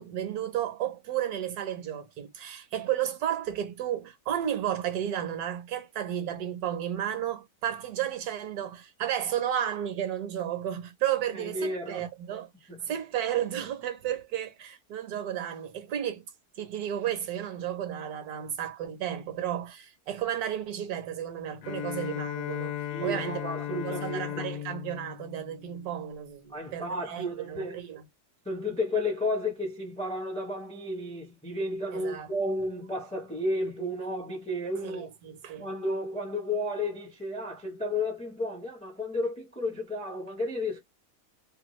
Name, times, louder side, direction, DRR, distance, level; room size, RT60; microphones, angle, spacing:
voice 1, 0.0-12.5 12.9-16.2 16.6-28.0 31.9-32.3 34.8-35.7, right 10 dB, 70° right, 1.2 m, -33 dB
voice 2, 11.3-12.0 12.7-12.9 22.8-24.5 26.5-27.8 28.5-35.1 35.6-40.8, left 1 dB, 5° left, 0.5 m, -32 dB
Bowed string instrument, 21.6-26.3, left 11 dB, 80° left, 1.1 m, -36 dB
2.9 x 2.3 x 3.0 m
omnidirectional pair, 1.7 m